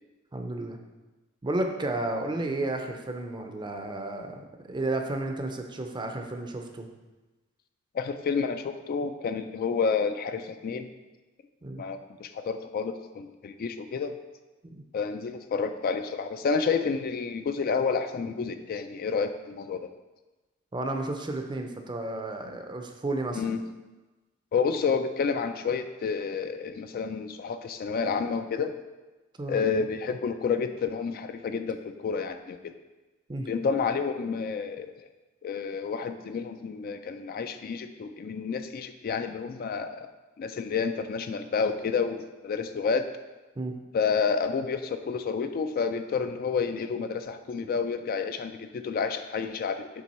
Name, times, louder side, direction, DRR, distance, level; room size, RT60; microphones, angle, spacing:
voice 1, 0.3-0.8 1.4-6.9 11.6-11.8 14.6-14.8 20.7-23.4 29.4-29.6 33.3-33.5 43.6-43.7, right 2 dB, 20° right, 4 dB, 0.5 m, -32 dB
voice 2, 7.9-10.9 11.8-14.2 14.9-19.8 23.4-23.6 24.5-28.7 29.5-32.7 33.5-34.9 35.4-40.1 40.4-43.1 43.9-49.9, left 5 dB, 45° left, 8 dB, 0.3 m, -29 dB
7.4 x 3.4 x 4.2 m, 1.2 s
head